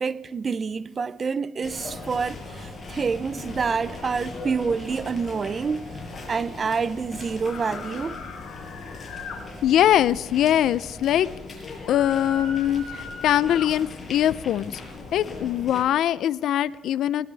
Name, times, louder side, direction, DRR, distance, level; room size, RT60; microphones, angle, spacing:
voice 1, 0.0-5.9 6.3-8.2, right 5 dB, 35° right, 0.6 m, -27 dB
sound 1, 1.6-15.8, left 3 dB, 25° left, 6.3 m, -39 dB
sound 2, 7.4-9.4 11.8-13.7, left 5 dB, 55° left, 4.5 m, -38 dB
voice 2, 9.6-11.3 11.9-14.8 15.1-17.3, left 11 dB, 70° left, 0.6 m, -22 dB
21.0 x 20.0 x 3.5 m
cardioid pair, 105°, 0 cm